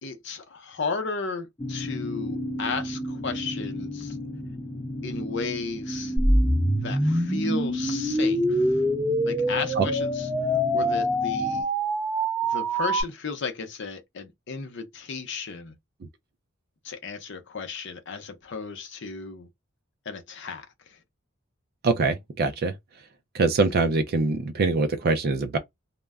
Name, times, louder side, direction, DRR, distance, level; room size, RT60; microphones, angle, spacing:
voice 1, 0.0-4.2 5.0-6.1 6.8-8.8 9.2-10.3 10.7-11.7 12.5-15.7 16.8-19.5 20.1-21.0, left 4 dB, 60° left, 0.6 m, -34 dB
sound 1, 1.6-11.6, equal, 15° left, 0.4 m, -35 dB
sound 2, 6.2-13.0, equal, 5° right, 0.8 m, -24 dB
voice 2, 21.8-22.7 23.3-25.6, right 3 dB, 50° right, 0.4 m, -23 dB
2.2 x 2.1 x 3.4 m
head